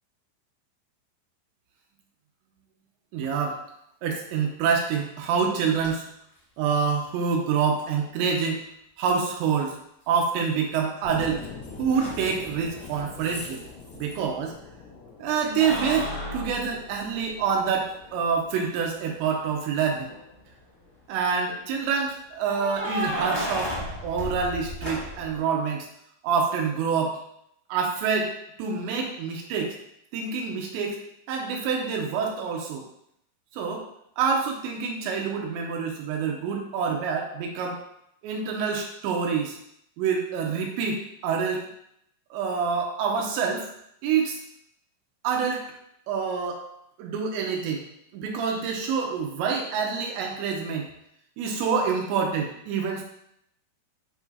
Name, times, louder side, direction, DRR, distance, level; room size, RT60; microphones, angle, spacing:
voice 1, 3.1-3.6 4.0-6.1 6.6-8.6 9.0-9.8 10.1-11.5 11.8-13.6 13.9-14.5 15.2-20.1 21.1-23.8 24.0-25.9 26.2-27.2 27.7-28.3 28.6-29.8 30.1-32.9 33.5-33.9 34.2-37.8 38.2-39.6 40.0-41.7 42.3-43.7 44.0-44.4 45.2-45.6 46.1-46.6 47.0-47.8 48.1-50.9 51.4-53.0, right 6 dB, 80° right, 1 dB, 3.0 m, -27 dB
Keys jangling, 5.8-5.9 7.8-7.9 10.1-10.7 11.0-14.1 15.4-17.5 18.0-18.1 19.9-20.4 22.4-25.4, equal, 35° left, 0.8 m, -34 dB
sound 1, 11.0-21.8, left 4 dB, 85° left, 1.7 m, -45 dB
8.8 x 4.7 x 2.8 m, 0.75 s
omnidirectional pair, 5.3 m